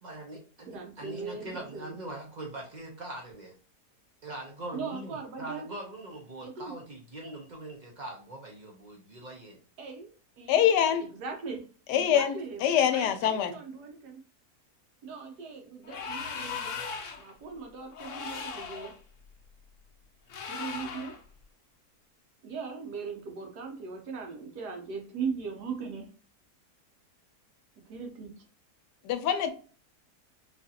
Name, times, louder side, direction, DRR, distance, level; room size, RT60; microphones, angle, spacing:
voice 1, 0.0-3.5 4.2-9.6, right 1 dB, 55° right, 0.4 m, -42 dB
voice 2, 0.7-2.0 4.7-5.7 6.4-6.8 9.8-10.1 10.4-10.7 11.0-11.6 11.9-14.2 15.0-16.8 17.2-18.9 20.5-21.2 22.4-26.1 27.9-28.4, right 5 dB, 80° right, 1.4 m, -39 dB
voice 3, 10.5-11.1 11.9-12.3 12.6-13.5 29.0-29.5, left 9 dB, 90° left, 1.2 m, -24 dB
sound 1, 15.8-17.3 17.9-19.0 20.3-21.2, left 5 dB, 60° left, 0.9 m, -38 dB
4.9 x 2.4 x 2.8 m
omnidirectional pair, 1.7 m